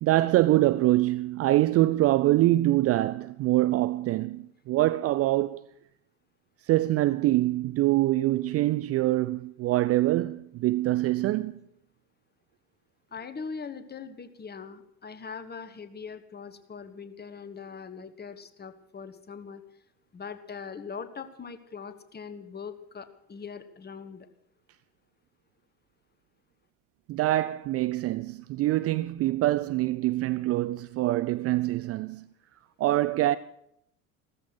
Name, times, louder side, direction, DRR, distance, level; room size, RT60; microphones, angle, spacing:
voice 1, 0.0-5.6 6.7-11.6 27.1-32.3 32.8-33.4, right 16 dB, 35° right, 0.5 m, -24 dB
voice 2, 13.1-19.6 20.1-24.3, left 5 dB, 20° left, 1.4 m, -41 dB
15.0 x 14.0 x 6.2 m
figure-of-eight pair, 65°, 43 cm